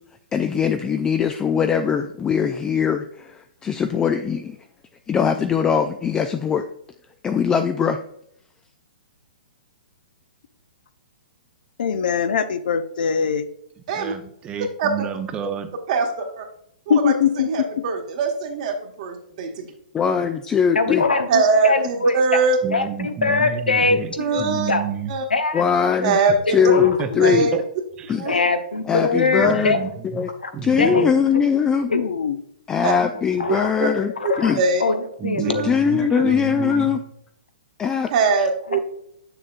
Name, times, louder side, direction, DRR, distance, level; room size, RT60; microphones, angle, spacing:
voice 1, 0.3-4.6 5.1-6.7 7.2-8.0 19.9-21.0 25.5-26.2 26.5-27.5 28.1-28.2 28.9-29.7 30.1-30.3 30.6-31.9 32.7-34.1 34.4-34.6 35.6-37.0 37.8-38.1, left 7 dB, 15° left, 7 dB, 0.3 m, -21 dB
voice 2, 11.8-13.5 16.9-17.5 31.9-32.4, left 7 dB, 70° left, 11 dB, 0.5 m, -21 dB
voice 3, 13.9-15.7 22.6-25.1 26.8-27.6 28.0-28.1 29.4-29.9 30.5-31.1 35.2-37.0, right 6 dB, 20° right, 9 dB, 0.7 m, -30 dB
voice 4, 15.9-16.4 16.9-17.1 17.4-19.7 21.3-22.6 24.2-24.7 25.1-25.2 26.0-26.6 27.2-27.5 28.1-28.4 32.8-32.9 33.5-33.9 34.2-34.8 35.4-36.3 38.1-38.8, right 4 dB, 50° right, 4 dB, 1.3 m, -22 dB
voice 5, 20.7-22.4 22.7-24.8 25.3-25.6 26.0-26.3 26.6-27.4 28.2-29.9 30.4-30.5 30.8-31.1 31.5-32.1 33.4-33.7 34.2-35.6 38.7-38.8, left 3 dB, 90° left, 7 dB, 0.9 m, -23 dB
7.3 x 6.7 x 2.4 m, 0.72 s
hypercardioid pair, 125°, 5 cm